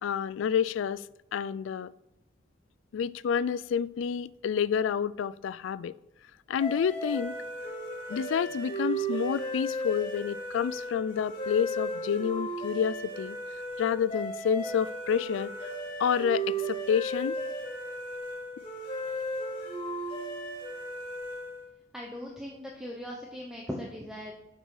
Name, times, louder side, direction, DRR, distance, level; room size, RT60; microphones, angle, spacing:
voice 1, 0.0-1.0 1.3-1.9 2.9-5.9 6.5-7.3 8.1-13.4 13.8-15.5 16.0-17.4, left 7 dB, 85° left, 0.3 m, -29 dB
sound 1, 6.6-21.7, right 1 dB, 30° left, 2.2 m, -35 dB
voice 2, 21.9-24.3, equal, 5° right, 0.8 m, -39 dB
8.0 x 5.5 x 4.7 m
head